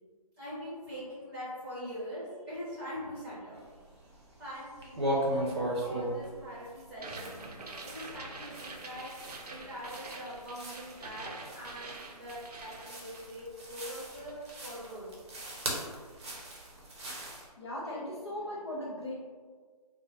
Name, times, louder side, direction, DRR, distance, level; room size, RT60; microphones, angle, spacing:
voice 1, 0.4-3.6 4.4-7.4 7.8-15.1 17.8-18.0 18.3-18.4, equal, 5° right, -11 dB, 1.1 m, -43 dB
sound 1, 3.6-4.4 4.7-17.5, right 1 dB, 45° right, 0.7 m, -38 dB
sound 2, 6.9-13.5 13.7-14.7, right 3 dB, 80° right, 0.5 m, -46 dB
voice 2, 17.6-19.1, left 1 dB, 45° left, -4 dB, 0.4 m, -38 dB
2.8 x 2.1 x 2.7 m, 1.5 s
figure-of-eight pair, 155°, 20 cm